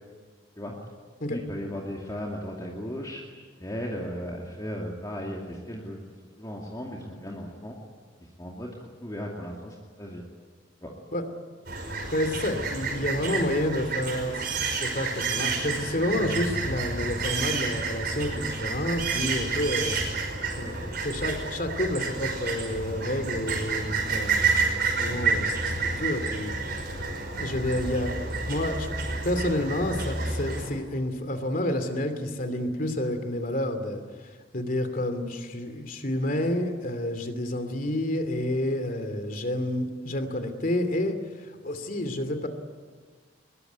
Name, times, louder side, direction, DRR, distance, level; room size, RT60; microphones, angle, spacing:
voice 1, 1.3-3.2 3.6-6.0 6.4-7.8 8.2-10.3 10.8-10.9, equal, 20° left, -2 dB, 2.5 m, -36 dB
sound 1, 11.7-30.7, right 4 dB, 60° right, 5.8 m, -30 dB
voice 2, 12.1-19.9 20.6-24.6 24.9-26.5 27.4-28.9 29.2-34.0 34.5-41.2 41.6-42.5, left 1 dB, 45° left, 8 dB, 2.8 m, -29 dB
22.5 x 21.5 x 9.4 m, 1.5 s
head